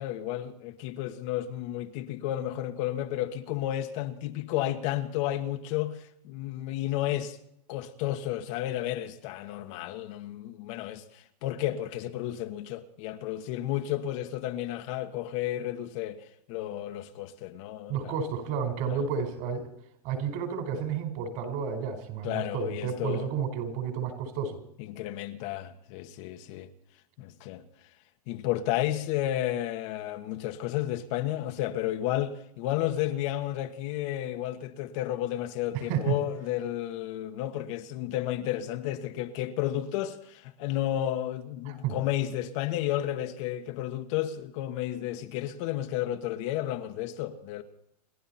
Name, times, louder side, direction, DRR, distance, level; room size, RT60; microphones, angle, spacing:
voice 1, 0.0-7.4 7.7-18.2 18.9-19.1 22.2-23.3 24.9-26.7 27.2-27.6 28.3-47.6, left 13 dB, 50° left, 1.4 m, -32 dB
voice 2, 17.9-19.7 20.0-24.6 35.7-36.2 41.6-42.0, right 7 dB, 50° right, 4.6 m, -31 dB
28.5 x 11.5 x 4.3 m
hypercardioid pair, 125°, 20 cm